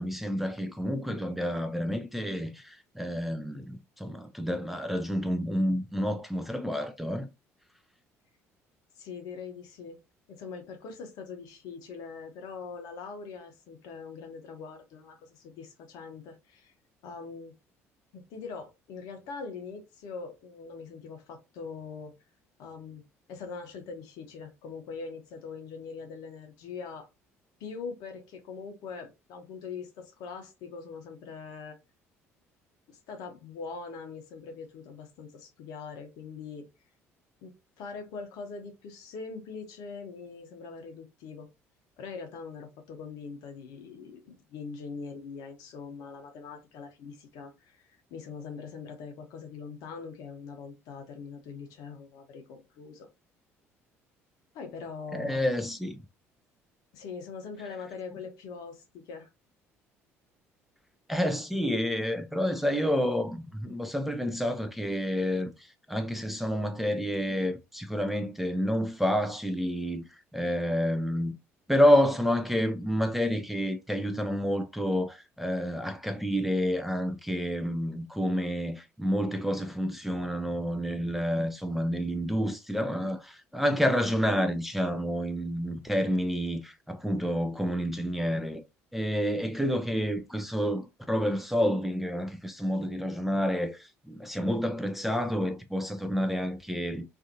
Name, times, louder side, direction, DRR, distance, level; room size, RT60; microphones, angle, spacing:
voice 1, 0.0-7.3 55.1-56.0 61.1-71.3 71.7-88.6 88.9-97.0, equal, ahead, 0.4 m, -29 dB
voice 2, 9.0-16.7 17.0-17.6 18.1-22.1 22.6-23.0 23.3-27.1 27.6-31.8 32.9-36.7 37.4-41.5 42.0-53.1 54.5-55.4 56.9-59.3, left 5 dB, 55° left, 0.7 m, -42 dB
2.5 x 2.5 x 2.6 m
figure-of-eight pair, 55°, 8 cm